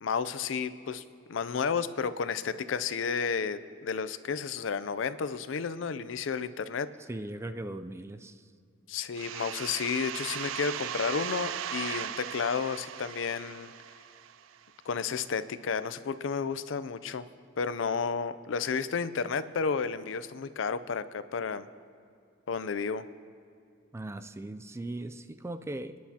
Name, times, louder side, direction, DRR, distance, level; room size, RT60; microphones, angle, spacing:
voice 1, 0.0-1.0 1.3-6.9 8.9-13.7 14.9-17.3 17.6-21.7 22.5-23.0, left 5 dB, 75° left, 14 dB, 0.5 m, -32 dB
voice 2, 7.1-8.4 23.9-26.0, right 1 dB, 15° right, 10 dB, 0.3 m, -39 dB
sound 1, 9.2-14.7, right 9 dB, 85° right, 0.4 m, -38 dB
28.0 x 10.5 x 2.8 m, 2.4 s
head